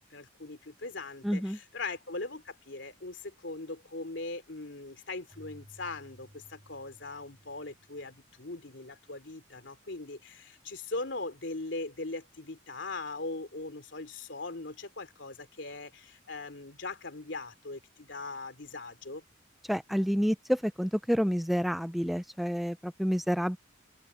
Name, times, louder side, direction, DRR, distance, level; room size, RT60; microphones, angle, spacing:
voice 1, 0.1-19.2, left 3 dB, 70° left, 3.0 m, -40 dB
voice 2, 1.2-1.6 19.7-23.6, equal, ahead, 0.5 m, -29 dB
Keyboard (musical), 5.3-8.8, equal, 30° right, 5.0 m, -57 dB
open air
head